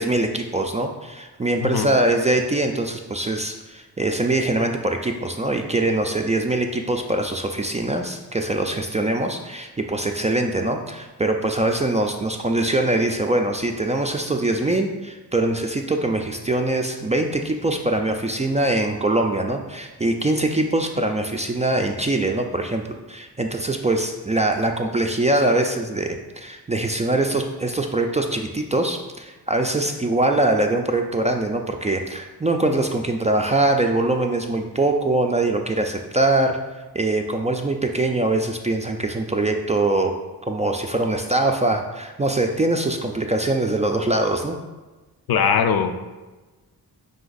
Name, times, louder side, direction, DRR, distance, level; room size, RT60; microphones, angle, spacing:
voice 1, 0.0-22.8 23.1-36.6 36.9-40.2 40.5-44.6, right 2 dB, 20° right, 3 dB, 0.3 m, -23 dB
voice 2, 45.3-46.0, left 6 dB, 65° left, 8 dB, 0.5 m, -20 dB
4.9 x 2.5 x 3.9 m, 1.2 s
cardioid pair, 55°, 41 cm